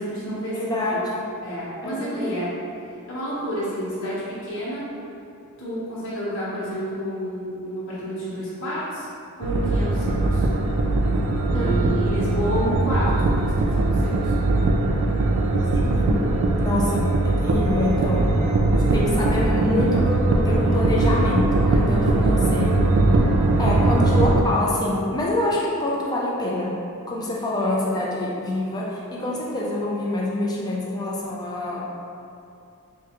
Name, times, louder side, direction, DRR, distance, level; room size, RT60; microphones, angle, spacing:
voice 1, 0.0-1.0 1.4-2.5 3.1-4.8 5.6-9.1 9.4-10.5 11.5-14.3 18.1-18.2 23.9-24.0, equal, 60° left, -10 dB, 1.0 m, -30 dB
voice 2, 0.5-1.3 1.8-2.4 11.5-11.9 15.7-18.3 18.8-22.8 23.6-26.8 27.1-31.9, left 1 dB, 15° left, -4 dB, 0.4 m, -26 dB
sound 1, 9.4-24.4, right 2 dB, 65° right, 0.3 m, -20 dB
4.5 x 2.2 x 2.9 m, 2.6 s
head